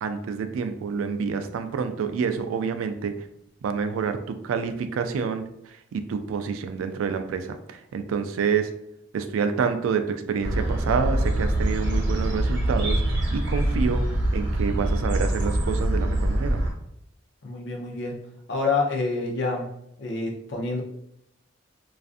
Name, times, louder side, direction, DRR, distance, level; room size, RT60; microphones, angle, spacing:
voice 1, 0.0-3.3 3.6-5.5 5.9-8.7 9.1-14.1 14.3-16.6, right 6 dB, 85° right, 9 dB, 0.3 m, -28 dB
sound 1, 10.4-16.7, right 1 dB, 60° right, 0.8 m, -24 dB
voice 2, 17.4-18.2 18.5-19.7 20.0-20.8, left 3 dB, 60° left, 0 dB, 0.5 m, -27 dB
2.5 x 2.4 x 2.4 m, 0.76 s
head